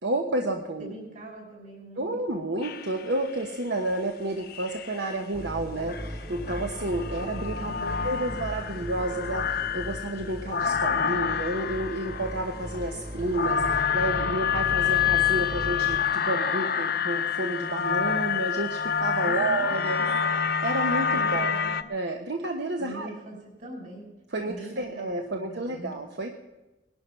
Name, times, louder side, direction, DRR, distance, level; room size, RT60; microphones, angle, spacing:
voice 1, 0.0-0.9 2.0-20.0 20.6-21.5 21.9-23.1 24.3-26.3, right 2 dB, 75° right, 4 dB, 1.2 m, -30 dB
voice 2, 0.8-2.1 7.6-8.3 19.2-20.1 21.1-21.9 22.8-24.1 24.4-25.9, right 1 dB, 50° right, 0 dB, 5.9 m, -42 dB
sound 1, 2.6-3.4 4.4-5.1 5.9-21.8, left 7 dB, 60° left, 0.8 m, -28 dB
sound 2, 5.3-16.0, equal, 35° right, 1.9 m, -38 dB
19.5 x 11.5 x 5.7 m, 1.1 s
head